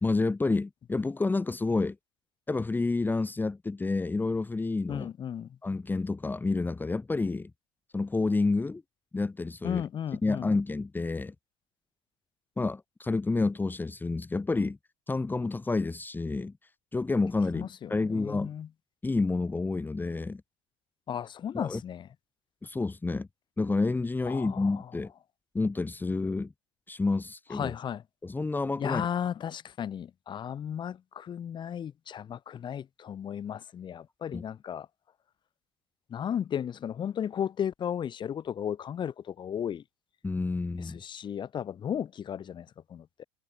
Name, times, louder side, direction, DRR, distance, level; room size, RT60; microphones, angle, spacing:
voice 1, 0.0-2.0 2.5-5.1 5.6-7.5 7.9-8.8 9.1-9.8 10.2-11.3 12.6-14.8 15.1-16.5 16.9-18.5 19.0-20.4 21.5-21.8 22.6-23.3 23.6-25.1 25.5-26.5 26.9-27.7 28.2-29.1 34.3-34.4 40.2-41.0, left 3 dB, 15° left, 1.4 m, -29 dB
voice 2, 4.9-5.6 9.6-10.5 17.5-18.7 21.1-22.1 24.2-24.8 27.5-28.0 28.8-34.9 36.1-39.8 40.8-43.2, left 9 dB, 30° left, 1.4 m, -35 dB
figure-of-eight pair, 70°, 14 cm